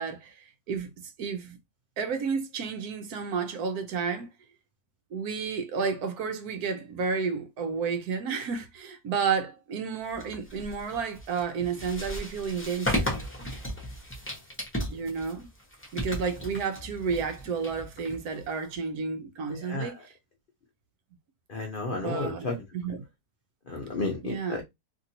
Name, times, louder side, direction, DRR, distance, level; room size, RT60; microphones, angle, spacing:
voice 1, 0.0-1.6 2.0-4.3 5.1-13.2 14.9-15.5 15.9-20.1 21.9-23.0 24.2-24.6, right 5 dB, 70° right, 1.1 m, -31 dB
sound 1, 10.1-18.8, equal, 10° left, 0.6 m, -35 dB
voice 2, 19.5-19.9 21.5-22.6 23.7-24.6, left 3 dB, 65° left, 0.5 m, -32 dB
2.9 x 2.6 x 2.7 m
omnidirectional pair, 1.8 m